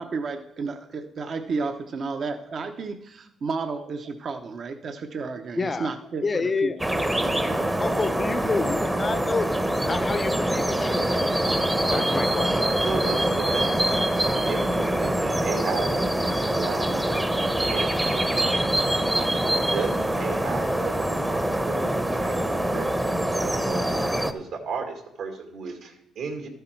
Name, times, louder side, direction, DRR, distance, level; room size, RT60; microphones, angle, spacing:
voice 1, 0.0-6.7 7.5-7.6, right 4 dB, 45° right, 7 dB, 0.7 m, -32 dB
voice 2, 5.6-5.9 6.2-6.8 7.8-11.3 11.9-12.7, left 4 dB, 25° left, 14 dB, 0.6 m, -29 dB
sound 1, 6.8-24.3, right 1 dB, 10° right, 0.8 m, -24 dB
voice 3, 12.8-13.8 14.4-18.7 19.7-26.5, right 5 dB, 70° right, 4 dB, 2.0 m, -35 dB
13.0 x 8.0 x 4.5 m, 0.85 s
cardioid pair, 115°, 0 cm